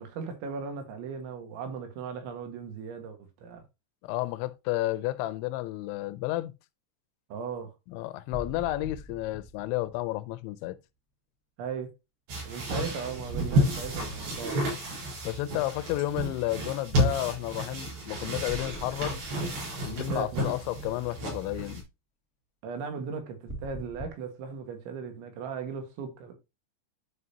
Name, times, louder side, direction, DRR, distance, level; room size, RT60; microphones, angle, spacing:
voice 1, 0.0-3.6 7.3-7.7 11.6-11.9 12.5-14.6 19.8-20.5 22.6-26.3, right 5 dB, 85° right, 4.0 m, -37 dB
voice 2, 4.0-6.5 7.9-10.8 12.7-12.8 15.2-19.1 19.8-21.8, left 16 dB, 90° left, 3.0 m, -31 dB
sound 1, 8.3-10.4 13.3-15.6 18.5-20.5 23.5-24.1, equal, 25° right, 1.8 m, -43 dB
sound 2, 12.3-21.8, equal, 60° right, 6.3 m, -31 dB
11.0 x 5.4 x 2.8 m
omnidirectional pair, 5.3 m